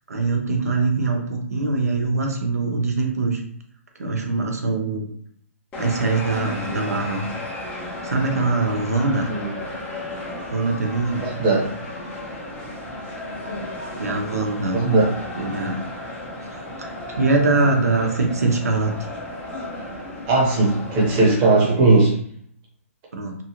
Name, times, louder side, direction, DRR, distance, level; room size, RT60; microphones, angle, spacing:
voice 1, 0.1-3.4 4.0-5.1 5.8-7.3 7.8-9.3 10.5-11.3 14.0-14.8 15.4-15.8 16.4-19.0 23.1-23.4, right 3 dB, 90° right, 2 dB, 0.7 m, -23 dB
sound 1, 5.7-21.3, left 1 dB, 15° left, 0.6 m, -34 dB
voice 2, 11.2-11.7 14.7-15.1 20.3-22.1, right 3 dB, 30° right, -3 dB, 0.9 m, -18 dB
2.9 x 2.4 x 2.9 m, 0.62 s
hypercardioid pair, 145°, 8 cm